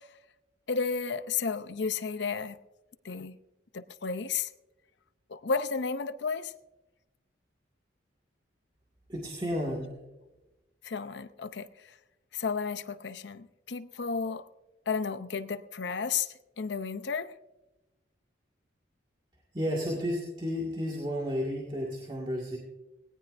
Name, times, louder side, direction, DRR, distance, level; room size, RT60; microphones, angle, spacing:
voice 1, 0.7-2.6 3.0-3.4 3.7-4.5 5.3-6.5 10.8-11.7 12.3-14.4 14.9-16.3 16.6-17.4, left 5 dB, 65° left, 0.6 m, -32 dB
voice 2, 9.1-9.9 19.5-22.6, equal, 25° right, 1.9 m, -32 dB
18.0 x 17.5 x 2.6 m
head